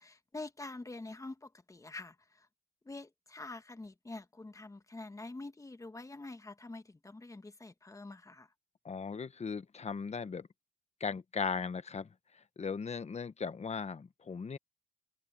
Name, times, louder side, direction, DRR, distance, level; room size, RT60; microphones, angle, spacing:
voice 1, 0.0-2.5 2.8-8.5, left 2 dB, 15° left, 1.3 m, -46 dB
voice 2, 8.8-10.5 11.0-12.1 12.6-14.6, left 5 dB, 35° left, 1.2 m, -37 dB
cardioid pair, 90°, 20 cm